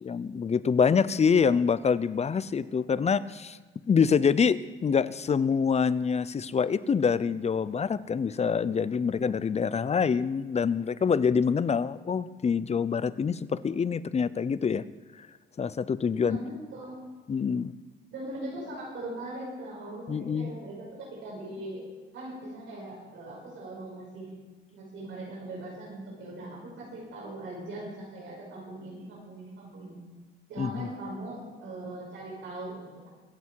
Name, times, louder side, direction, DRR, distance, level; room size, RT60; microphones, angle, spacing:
voice 1, 0.0-3.6 3.9-14.8 15.6-16.4 17.3-17.7 20.1-20.5 30.6-30.9, left 6 dB, 35° left, 17 dB, 0.6 m, -26 dB
voice 2, 16.2-17.0 18.1-21.8 22.1-24.3 24.7-30.0 30.5-33.1, right 1 dB, 80° right, -3 dB, 5.5 m, -40 dB
24.0 x 8.4 x 4.7 m, 1.3 s
cardioid pair, 90°, 20 cm